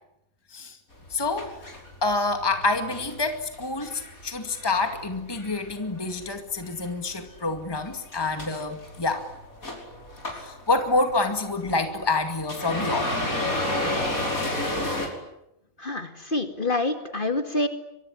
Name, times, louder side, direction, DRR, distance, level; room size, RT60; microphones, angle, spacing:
sound 1, 0.9-6.3 6.6-15.1, left 1 dB, 85° left, 6.0 m, -32 dB
voice 1, 1.1-1.5 2.0-9.3 10.4-13.2, left 3 dB, 15° left, 6 dB, 2.2 m, -27 dB
voice 2, 15.8-17.7, left 2 dB, 40° left, 7 dB, 2.5 m, -27 dB
25.0 x 23.5 x 10.0 m, 0.85 s
omnidirectional pair, 1.4 m